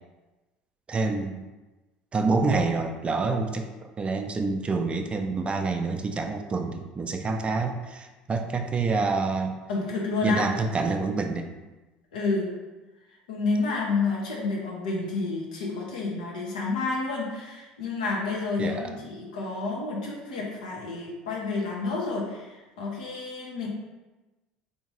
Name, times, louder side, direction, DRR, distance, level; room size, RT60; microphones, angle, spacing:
voice 1, 0.9-1.4 2.1-3.7 4.0-9.6 10.2-11.5 18.6-18.9, right 3 dB, 30° right, 5 dB, 0.4 m, -27 dB
voice 2, 9.7-10.4 12.1-12.5 13.3-23.7, left 3 dB, 85° left, -2 dB, 0.8 m, -29 dB
3.5 x 2.8 x 3.0 m, 1.1 s
hypercardioid pair, 70°, 4 cm